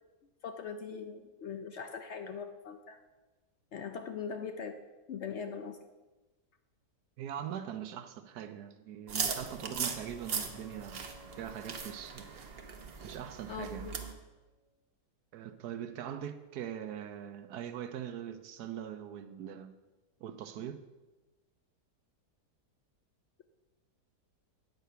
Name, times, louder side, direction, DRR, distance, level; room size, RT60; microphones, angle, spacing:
voice 1, 0.4-3.0 3.7-4.8 5.1-5.8 9.7-9.8 13.5-14.0, left 6 dB, 70° left, 7 dB, 0.6 m, -41 dB
voice 2, 7.2-11.1 11.4-12.3 13.0-13.9 15.3-19.7 20.2-20.8, right 10 dB, 70° right, 10 dB, 1.2 m, -42 dB
sound 1, 8.8-14.2 14.5-14.6, left 2 dB, 85° left, 4.4 m, -59 dB
sound 2, 9.1-14.1, right 5 dB, 45° right, 0.9 m, -39 dB
9.2 x 7.9 x 5.7 m, 1.1 s
omnidirectional pair, 1.8 m